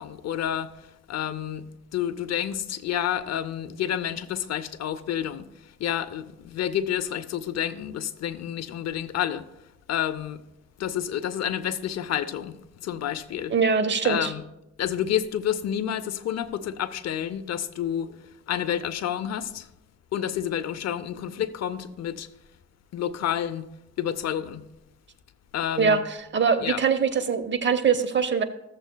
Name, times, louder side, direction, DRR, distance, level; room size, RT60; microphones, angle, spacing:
voice 1, 0.0-1.7 1.9-9.5 9.9-10.4 10.8-13.5 14.0-14.4 14.8-19.7 20.1-22.3 22.9-23.7 24.0-24.7 25.5-26.0 26.6-26.8, left 10 dB, 60° left, 0.6 m, -29 dB
voice 2, 13.5-14.3 25.8-26.0 26.3-28.4, right 6 dB, 40° right, 0.8 m, -22 dB
15.0 x 7.2 x 2.2 m
cardioid pair, 90°, 30 cm